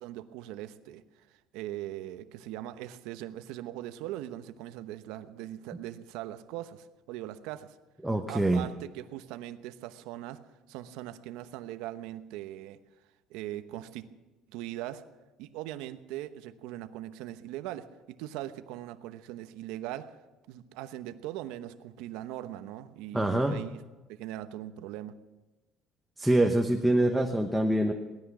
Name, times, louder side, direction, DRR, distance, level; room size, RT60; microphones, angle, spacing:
voice 1, 0.0-1.3 1.5-7.8 8.3-10.4 10.7-12.8 13.3-14.1 14.5-15.0 15.4-20.2 20.5-23.8 24.1-25.1, right 13 dB, 90° right, 11 dB, 0.9 m, -40 dB
voice 2, 8.0-8.7 23.1-23.6 26.2-27.9, right 1 dB, 5° right, 3 dB, 0.9 m, -25 dB
18.0 x 13.0 x 6.1 m, 1.1 s
cardioid pair, 150°, 0 cm